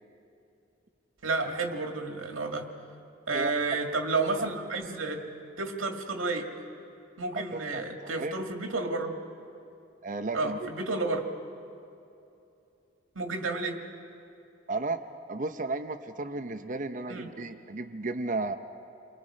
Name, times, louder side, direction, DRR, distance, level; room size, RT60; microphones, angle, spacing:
voice 1, 1.2-2.7 3.3-5.2 5.6-6.5 7.2-9.2 10.3-11.3 13.2-13.8 17.1-17.3, right 3 dB, 90° right, 3 dB, 2.2 m, -31 dB
voice 2, 3.3-3.8 7.3-8.3 10.0-10.7 14.7-15.0 15.3-18.5, right 3 dB, 40° right, 8 dB, 0.7 m, -34 dB
29.5 x 23.5 x 5.1 m, 2.7 s
head